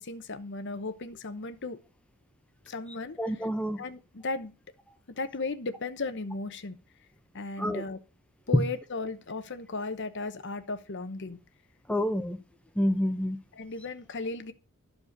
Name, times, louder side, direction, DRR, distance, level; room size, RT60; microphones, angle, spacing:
voice 1, 0.0-1.8 2.6-3.5 3.8-4.5 5.1-6.8 7.3-8.0 8.5-11.4 13.5-14.5, left 3 dB, 55° left, 0.9 m, -36 dB
voice 2, 3.2-3.8 7.6-7.8 8.5-8.6 11.9-12.4 12.8-13.4, equal, 5° left, 0.9 m, -27 dB
13.5 x 5.1 x 6.6 m
head